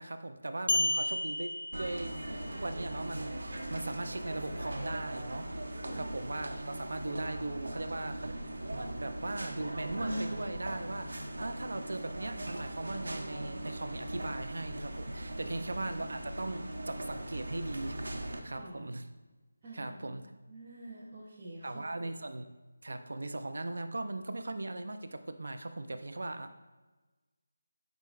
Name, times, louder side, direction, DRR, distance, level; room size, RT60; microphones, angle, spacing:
voice 1, 0.0-2.2 2.5-5.5 5.9-8.3 8.7-19.1 19.7-20.3 21.6-22.4 22.8-26.6, right 2 dB, 65° right, 8 dB, 0.5 m, -39 dB
sound 1, 0.7-2.5, left 2 dB, 85° left, 0.4 m, -32 dB
sound 2, 1.7-18.4, right 1 dB, 90° right, 1.0 m, -40 dB
voice 2, 18.4-18.9 19.6-20.2 20.5-22.1, right 1 dB, 15° right, -9 dB, 0.6 m, -48 dB
9.3 x 5.0 x 2.4 m, 1.2 s
figure-of-eight pair, 180°, 0 cm